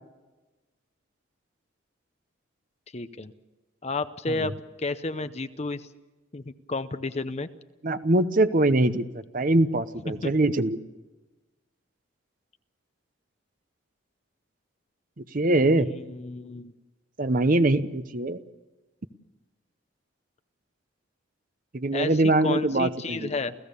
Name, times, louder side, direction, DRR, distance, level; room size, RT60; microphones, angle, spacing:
voice 1, 2.9-3.3 3.8-5.9 6.3-7.5 10.1-10.4 15.8-16.7 21.9-23.6, left 3 dB, 30° left, 12 dB, 0.7 m, -32 dB
voice 2, 7.8-9.0 9.3-10.8 15.2-15.9 17.2-18.4 21.7-23.3, right 2 dB, 45° right, 11 dB, 0.8 m, -23 dB
29.0 x 16.0 x 6.9 m, 1.2 s
head